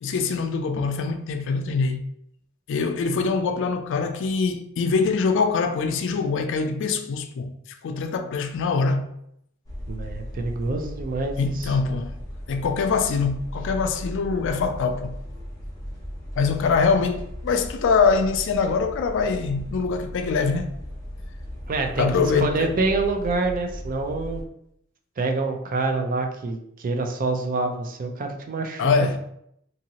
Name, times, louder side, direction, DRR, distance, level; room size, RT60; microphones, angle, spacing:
voice 1, 0.0-2.0 2.7-7.5 7.8-9.1 11.4-12.1 12.5-15.1 16.4-20.7 22.0-22.7 28.8-29.2, left 4 dB, 60° left, 0.3 m, -23 dB
sound 1, 9.6-24.4, equal, 15° left, 0.8 m, -37 dB
voice 2, 9.9-11.7 21.7-24.4 25.2-28.9, right 3 dB, 40° right, 0.4 m, -26 dB
2.8 x 2.6 x 2.8 m
head